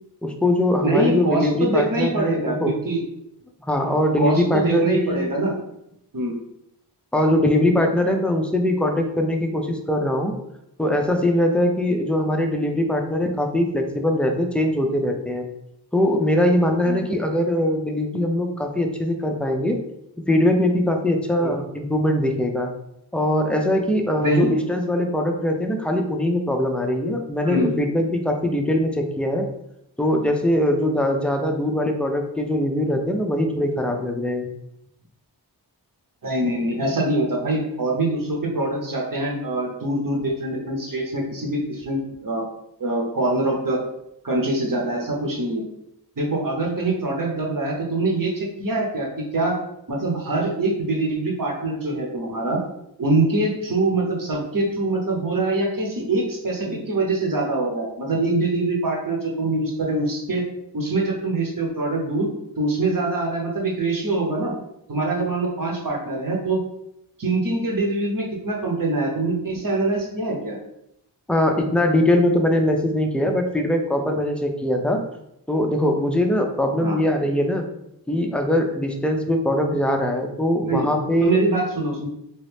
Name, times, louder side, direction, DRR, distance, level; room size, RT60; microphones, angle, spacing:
voice 1, 0.2-2.8 3.7-5.2 7.1-10.3 10.8-15.4 15.9-19.8 20.3-22.7 23.1-29.5 30.0-34.5 71.3-75.0 75.5-77.6 78.1-81.4, left 1 dB, 5° left, 3 dB, 0.4 m, -21 dB
voice 2, 0.8-3.0 4.2-5.5 6.1-6.4 16.8-17.0 21.4-21.5 24.2-24.5 27.4-27.7 36.2-42.5 42.8-43.8 44.2-45.6 46.2-49.6 49.9-52.6 53.0-60.5 60.7-62.3 62.6-64.5 64.9-66.6 67.2-70.6 76.8-77.0 80.6-80.9 81.2-82.1, right 2 dB, 50° right, -1 dB, 0.9 m, -24 dB
3.0 x 2.7 x 3.3 m, 0.80 s
wide cardioid pair, 70°, 41 cm